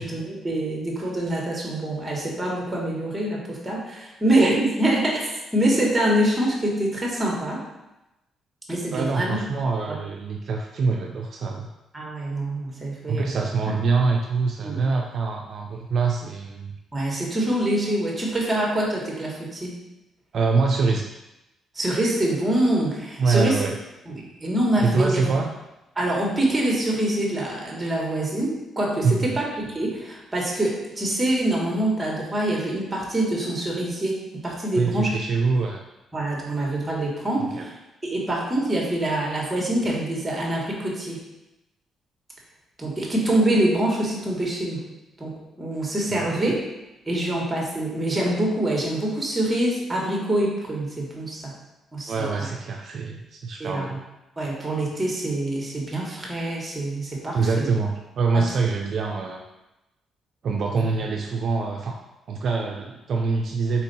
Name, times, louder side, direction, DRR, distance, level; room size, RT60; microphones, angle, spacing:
voice 1, 0.0-7.6 8.7-9.4 11.9-13.2 13.7-13.8 14.6-14.8 16.9-19.7 21.7-23.6 24.1-25.3 26.0-35.1 36.1-37.7 38.0-41.2 42.8-44.8 45.2-45.3 45.6-46.5 47.1-51.6 51.9-52.5 53.6-54.0 54.4-57.7 58.3-58.4, right 1 dB, 20° right, -2 dB, 1.4 m, -25 dB
voice 2, 8.9-11.7 13.1-16.8 20.3-21.1 23.2-23.8 24.8-25.5 29.0-29.3 34.8-35.8 37.4-37.7 46.1-46.5 52.1-54.0 57.3-59.4 60.4-62.0 62.3-63.8, right 4 dB, 60° right, 1 dB, 0.4 m, -24 dB
4.4 x 2.8 x 4.1 m, 0.97 s
cardioid pair, 90°, 0 cm